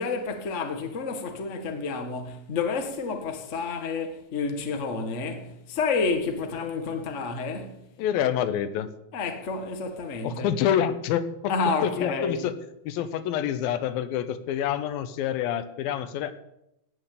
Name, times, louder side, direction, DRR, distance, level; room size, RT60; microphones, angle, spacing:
voice 1, 0.0-7.8 9.1-10.5 11.5-12.4, left 4 dB, 45° left, 0.9 m, -29 dB
voice 2, 8.0-8.9 10.2-11.5 11.8-12.5 12.9-16.3, left 9 dB, 90° left, 2.7 m, -27 dB
17.0 x 6.1 x 8.5 m
omnidirectional pair, 4.1 m